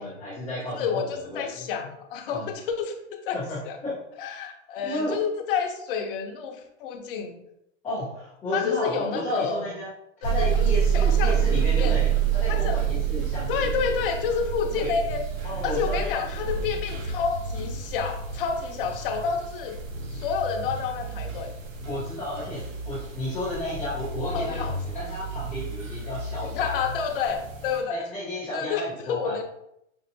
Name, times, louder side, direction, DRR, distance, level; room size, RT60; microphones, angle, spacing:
voice 1, 0.0-1.0 1.3-1.4 2.3-2.5 3.3-3.9 4.8-5.2 7.8-9.9 10.2-13.5 13.8-13.9 14.7-15.0 15.4-16.2 21.8-24.6 24.9-26.7 27.9-29.4, left 1 dB, 5° left, -14 dB, 0.3 m, -33 dB
voice 2, 0.8-2.9 3.2-3.4 3.6-3.8 4.2-7.4 8.5-9.7 10.4-10.6 10.9-12.0 12.5-12.8 13.5-15.2 15.6-19.8 20.1-21.5 24.3-24.7 26.4-28.1 28.5-29.4, left 6 dB, 45° left, 3 dB, 0.7 m, -29 dB
sound 1, 10.2-27.8, right 7 dB, 90° right, 1.0 m, -28 dB
5.4 x 2.5 x 2.7 m, 0.78 s
hypercardioid pair, 150°, 38 cm